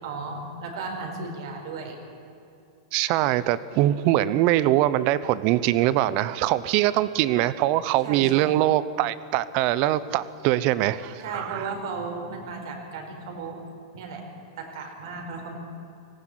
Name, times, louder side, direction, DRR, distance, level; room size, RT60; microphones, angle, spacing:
voice 1, 0.0-2.0 8.0-8.5 11.2-13.6 13.9-14.2 14.6-15.6, right 4 dB, 70° right, 2 dB, 4.6 m, -35 dB
voice 2, 2.9-11.7, right 14 dB, 50° right, 17 dB, 0.8 m, -23 dB
18.5 x 15.5 x 9.7 m, 2.6 s
hypercardioid pair, 135°, 3 cm